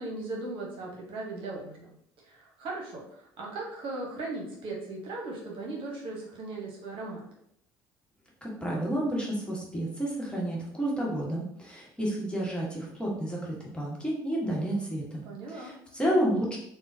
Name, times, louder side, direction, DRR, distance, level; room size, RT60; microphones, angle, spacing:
voice 1, 0.0-7.2 15.2-15.7, right 2 dB, 60° right, -2 dB, 1.0 m, -38 dB
voice 2, 8.4-16.6, right 1 dB, 10° left, -4 dB, 1.2 m, -30 dB
3.6 x 2.2 x 2.6 m, 0.71 s
hypercardioid pair, 65°, 10 cm